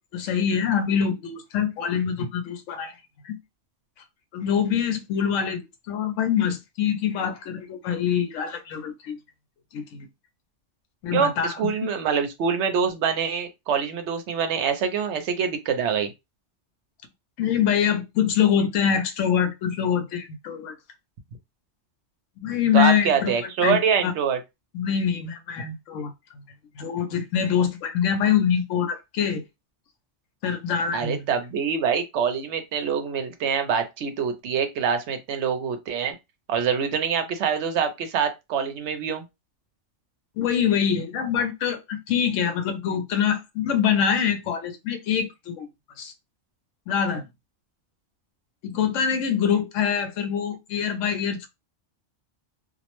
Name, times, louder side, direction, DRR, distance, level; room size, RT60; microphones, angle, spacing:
voice 1, 0.1-2.9 3.2-3.4 4.3-9.2 9.7-10.1 11.0-11.7 17.4-20.7 22.4-23.3 23.6-24.1 24.7-26.1 26.8-29.4 30.4-31.2 40.4-45.7 46.0-46.1 46.9-47.2 48.6-51.5, left 8 dB, 85° left, 0.9 m, -24 dB
voice 2, 11.1-16.1 22.7-24.4 30.9-36.2 36.5-39.2, right 7 dB, 70° right, 0.8 m, -25 dB
2.4 x 2.0 x 2.9 m
omnidirectional pair, 1.3 m